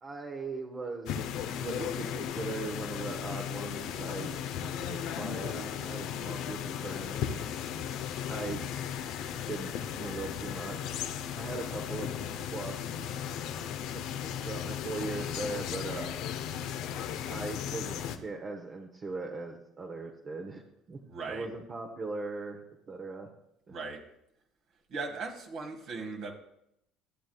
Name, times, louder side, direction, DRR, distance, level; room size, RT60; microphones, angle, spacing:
voice 1, 0.0-4.3 4.9-7.3 8.3-8.6 9.5-11.0 11.4-12.2 12.5-12.8 14.4-16.1 17.3-20.6 20.9-21.0 21.3-23.3, right 3 dB, 35° right, 1 dB, 1.0 m, -39 dB
sound 1, 1.1-18.2, left 9 dB, 70° left, 0.6 m, -36 dB
voice 2, 21.1-21.5 23.7-24.0 24.9-26.3, right 4 dB, 65° right, 1 dB, 1.7 m, -38 dB
14.0 x 7.5 x 2.3 m, 0.79 s
hypercardioid pair, 70°, 0 cm